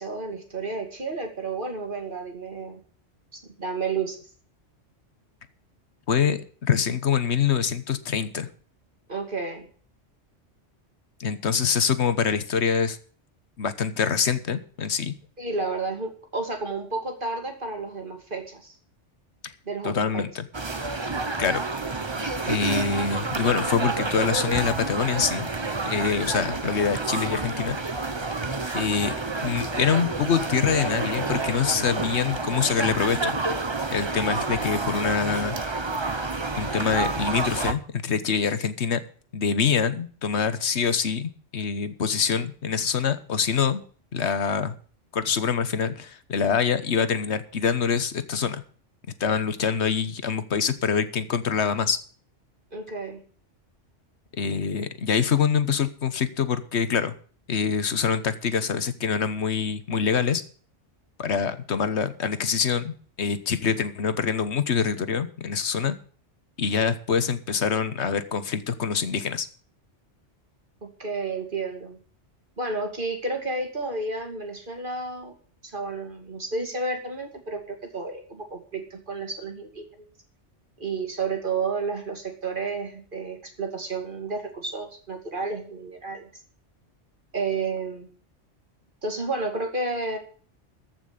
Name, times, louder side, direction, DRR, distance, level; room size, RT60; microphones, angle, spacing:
voice 1, 0.0-2.8 3.4-4.2 9.1-9.7 15.4-18.7 19.7-20.2 52.7-53.2 70.8-72.0 72.6-75.3 75.6-79.8 80.8-86.3 87.3-88.1 89.0-90.2, right 3 dB, 45° right, 4 dB, 2.7 m, -31 dB
voice 2, 6.1-8.5 11.2-13.0 13.6-15.1 19.4-19.5 19.8-20.5 21.4-21.6 22.5-25.5 25.8-27.8 28.7-29.1 29.4-33.4 33.9-35.6 36.6-39.0 39.3-43.8 44.1-44.7 45.1-48.6 49.2-52.0 54.3-57.1 57.5-60.4 61.2-66.0 66.6-69.5, left 6 dB, 65° left, 12 dB, 1.4 m, -25 dB
sound 1, 20.5-37.7, right 3 dB, 25° right, 1.0 m, -29 dB
14.0 x 6.1 x 8.5 m, 0.43 s
omnidirectional pair, 1.2 m